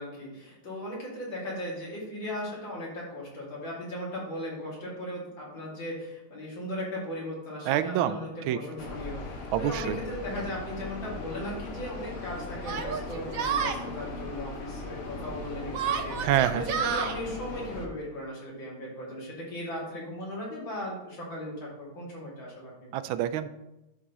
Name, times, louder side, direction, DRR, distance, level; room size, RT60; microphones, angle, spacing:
voice 1, 0.0-16.3 16.5-23.0, left 1 dB, 70° left, -5 dB, 3.3 m, -37 dB
voice 2, 7.7-8.2 8.4-8.6 9.5-10.0 16.2-16.6 22.9-23.5, right 11 dB, 90° right, 12 dB, 1.4 m, -26 dB
sound 1, 8.8-17.9, left 2 dB, 45° left, 1.1 m, -39 dB
Yell, 10.3-10.4 11.4-11.5 12.6-13.8 15.7-17.2, right 7 dB, 65° right, 0.9 m, -30 dB
11.5 x 6.1 x 3.1 m, 0.95 s
omnidirectional pair, 2.2 m